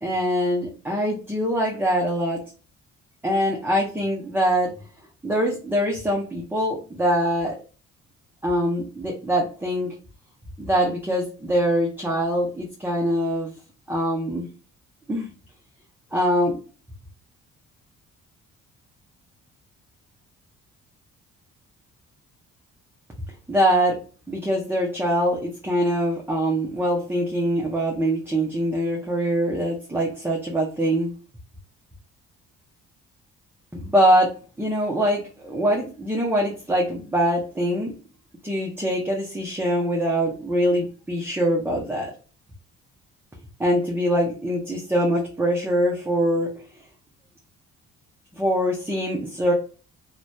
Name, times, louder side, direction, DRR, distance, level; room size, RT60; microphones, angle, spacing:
voice 1, 0.0-2.4 3.2-4.7 5.2-7.5 8.4-9.9 10.6-13.5 13.9-14.5 15.1-15.3 16.1-16.6 23.5-24.0 24.3-31.1 33.7-34.3 34.6-37.9 38.4-42.1 43.6-46.5 48.4-49.5, equal, 5° right, -3 dB, 0.6 m, -23 dB
2.6 x 2.1 x 2.2 m, 0.36 s
cardioid pair, 90°, 30 cm